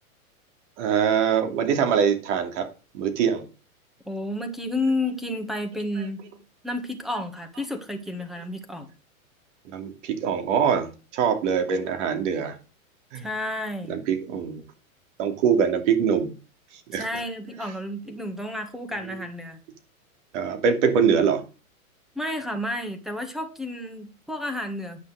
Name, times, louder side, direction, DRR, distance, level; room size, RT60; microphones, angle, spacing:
voice 1, 0.8-2.7 2.9-3.4 9.7-12.5 13.1-13.3 13.9-14.6 15.2-16.3 16.9-17.1 19.1-19.2 20.3-21.4, right 7 dB, 55° right, 6 dB, 2.9 m, -23 dB
voice 2, 4.1-6.2 6.6-8.9 13.2-14.0 16.9-19.6 22.2-25.0, left 1 dB, ahead, 6 dB, 1.7 m, -31 dB
9.7 x 6.1 x 6.4 m, 0.34 s
hypercardioid pair, 125°, 43 cm